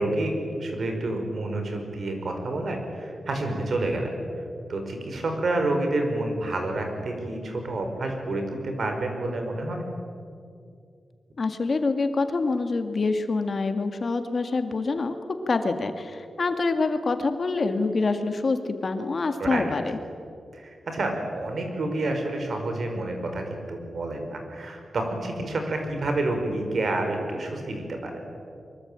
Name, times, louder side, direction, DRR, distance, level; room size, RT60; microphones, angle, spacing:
voice 1, 0.0-4.1 4.7-9.8 19.4-19.7 20.5-28.3, right 2 dB, 60° right, 4 dB, 5.3 m, -29 dB
voice 2, 11.4-15.2 15.5-19.8, left 3 dB, 45° left, 7 dB, 2.0 m, -26 dB
24.0 x 23.5 x 8.9 m, 2.3 s
wide cardioid pair, 110°, 0 cm